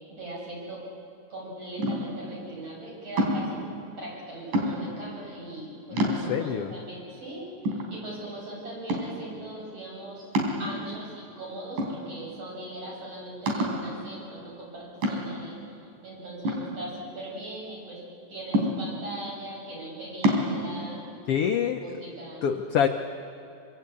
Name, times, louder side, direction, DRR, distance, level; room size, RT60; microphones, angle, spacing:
voice 1, 0.1-0.8 1.3-3.6 4.0-7.5 7.9-10.3 10.6-15.6 16.0-18.0 18.3-21.0 21.8-22.4, right 1 dB, 45° right, -4 dB, 8.2 m, -40 dB
sound 1, 1.8-2.3 3.2-3.6 4.5-5.0 5.6-5.7 6.0-6.6 7.2-7.3 7.7-8.4 8.9-9.3 10.4-11.1 11.8-12.4 12.8-12.9 13.5-13.9 15.0-15.5 16.5-17.4 18.5-19.1 20.2-20.5, equal, 70° right, 5.2 m, -27 dB
voice 2, 5.9-6.7 21.3-22.0 22.4-22.9, left 8 dB, 80° left, 5 dB, 1.3 m, -26 dB
25.5 x 25.0 x 8.5 m, 2.6 s
omnidirectional pair, 3.9 m